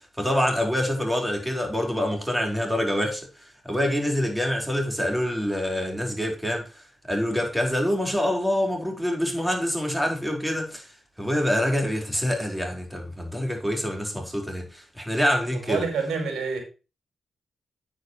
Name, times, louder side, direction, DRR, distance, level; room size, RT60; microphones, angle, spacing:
voice 1, 0.2-3.3 3.6-6.8 7.1-10.9 11.2-15.9, equal, 5° right, 4.6 m, -26 dB
voice 2, 15.5-16.6, right 5 dB, 70° right, 4.7 m, -28 dB
9.2 x 9.0 x 3.2 m
supercardioid pair, 45°, 0 cm